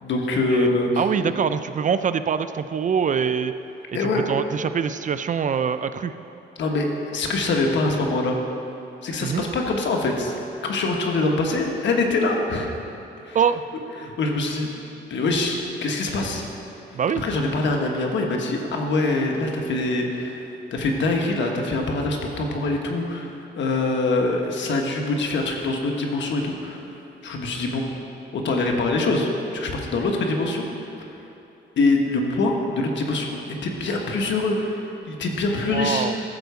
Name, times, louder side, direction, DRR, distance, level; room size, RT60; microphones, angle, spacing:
voice 1, 0.0-1.0 3.9-4.2 6.6-6.9 7.1-8.4 9.0-10.4 10.6-12.7 13.2-13.4 14.0-14.7 15.1-16.4 17.1-26.8 27.2-27.8 28.3-30.6 31.8-36.1, left 2 dB, 70° left, 1 dB, 1.4 m, -24 dB
voice 2, 1.0-3.5 4.1-6.1 9.2-9.4 13.3-13.6 16.9-17.2 35.7-36.2, right 7 dB, 40° right, 11 dB, 0.4 m, -24 dB
13.5 x 4.6 x 6.9 m, 2.8 s
cardioid pair, 95°, 20 cm